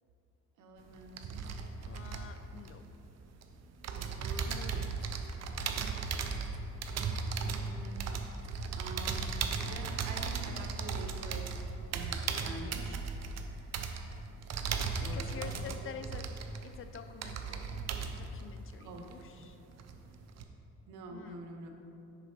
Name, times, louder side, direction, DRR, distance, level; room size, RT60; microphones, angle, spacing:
voice 1, 0.6-1.3 3.9-4.9 5.8-6.4 6.9-8.1 8.8-11.5 11.9-13.1 15.0-15.6 18.8-19.1 20.9-21.7, right 2 dB, 85° right, 4 dB, 0.9 m, -47 dB
sound 1, 0.8-3.4 3.8-19.5 19.8-20.4, right 5 dB, 60° right, 0.6 m, -37 dB
voice 2, 1.8-2.9 4.5-5.1 15.0-16.3 16.6-17.8 18.2-19.6 21.1-21.4, left 7 dB, 45° left, 9 dB, 0.5 m, -48 dB
6.8 x 5.5 x 4.3 m, 2.9 s
cardioid pair, 90°, 30 cm